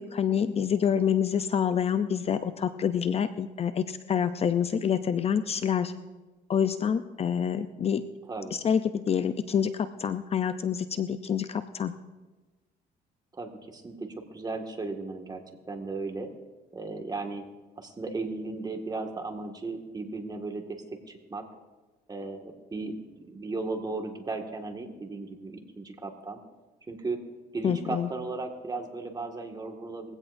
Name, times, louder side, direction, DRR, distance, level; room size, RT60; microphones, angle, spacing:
voice 1, 0.0-5.9 6.5-8.1 8.5-11.9 27.6-28.1, left 8 dB, 35° left, 11 dB, 0.6 m, -27 dB
voice 2, 8.2-8.6 13.3-16.3 16.7-17.4 17.8-21.4 22.1-26.4 26.9-27.2 27.5-30.1, right 3 dB, 25° right, 3 dB, 1.9 m, -36 dB
21.5 x 16.5 x 2.6 m, 1.2 s
cardioid pair, 110°, 17 cm